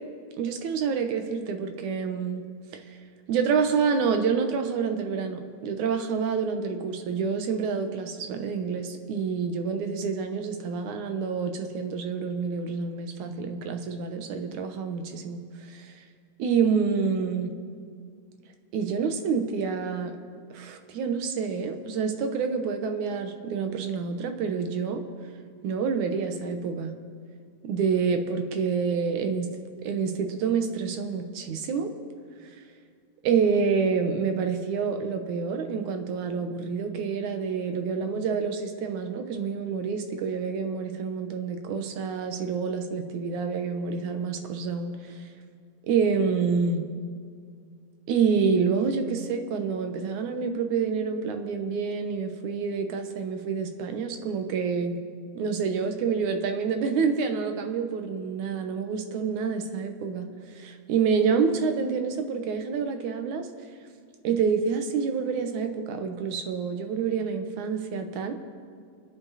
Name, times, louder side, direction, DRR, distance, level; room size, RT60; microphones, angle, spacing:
voice 1, 0.4-2.5 2.7-2.8 3.3-15.9 16.4-17.5 18.7-20.1 20.5-25.0 25.6-26.9 27.6-29.5 29.8-31.9 33.2-45.1 45.8-46.9 48.1-55.0 55.3-60.3 60.5-63.5 64.2-68.3, right 5 dB, 85° right, 6 dB, 2.6 m, -28 dB
28.5 x 10.0 x 4.1 m, 2.2 s
omnidirectional pair, 3.3 m